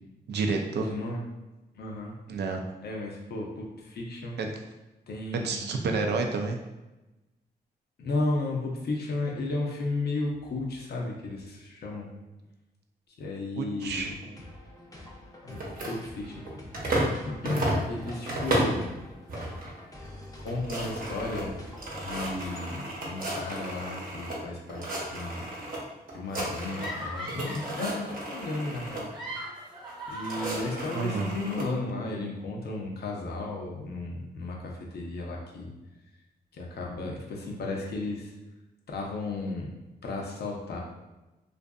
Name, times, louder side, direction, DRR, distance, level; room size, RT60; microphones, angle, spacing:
voice 1, 0.3-0.9 2.3-2.6 4.4-4.5 5.3-6.6 13.6-14.1 30.9-31.3, right 4 dB, 75° right, 3 dB, 0.4 m, -29 dB
voice 2, 0.8-1.2 1.8-2.2 2.8-4.4 5.1-5.6 8.0-12.1 13.2-14.2 15.4-15.6 15.9-16.4 16.9-19.0 20.4-21.5 22.0-25.5 26.1-29.1 30.1-35.7 36.5-38.3 38.9-39.7 40.0-40.8, left 2 dB, 70° left, -1 dB, 0.6 m, -34 dB
sound 1, 13.8-22.6, left 1 dB, 20° left, 0.6 m, -46 dB
sound 2, 15.5-17.2 17.4-18.8 19.3-19.7 20.1-20.2 20.4-24.4 24.7-25.8 26.1-27.0 27.3-29.0 29.8-31.7, right 1 dB, 55° right, 0.8 m, -33 dB
sound 3, 26.8-27.8 28.9-31.3, equal, 25° right, 1.0 m, -39 dB
2.5 x 2.4 x 2.3 m, 1.0 s
cardioid pair, 60°, 17 cm